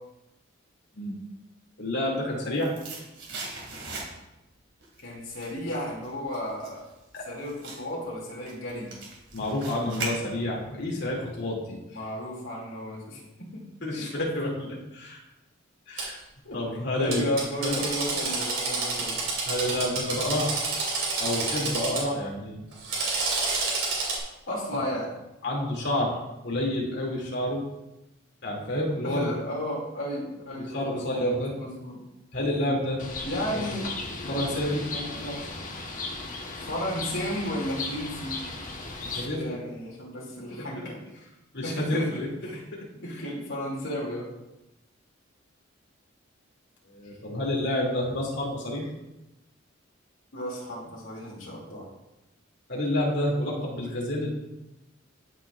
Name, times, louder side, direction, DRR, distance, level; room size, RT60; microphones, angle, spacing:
voice 1, 1.8-2.7 7.1-7.2 9.3-11.8 13.8-15.2 15.9-16.2 16.5-17.2 17.6-17.8 19.5-20.5 21.2-22.6 24.7-24.8 25.4-26.2 26.4-27.6 28.4-29.3 30.7-31.5 32.3-33.1 33.5-33.6 34.3-34.8 39.0-39.6 41.5-42.3 42.7-42.8 46.9-48.9 52.7-54.3, left 1 dB, 60° left, -3 dB, 2.4 m, -29 dB
sound 1, 2.3-4.5 4.8-10.7 11.0-11.1, right 3 dB, 60° right, 2.3 m, -40 dB
voice 2, 5.0-6.8 7.3-8.9 11.9-13.6 16.4-16.5 17.0-19.2 24.5-25.1 29.0-32.0 33.2-33.9 34.2-34.6 34.9-35.4 36.6-38.4 39.1-41.0 41.6-42.6 43.0-44.3 50.3-51.9, equal, 80° left, -5 dB, 2.5 m, -33 dB
Drill, 16.0-16.1 17.1-22.0 22.7-24.2, right 3 dB, 90° right, 2.8 m, -29 dB
Bird, 33.0-39.3, left 3 dB, 40° left, 1.2 m, -36 dB
13.0 x 6.1 x 2.4 m, 0.95 s
head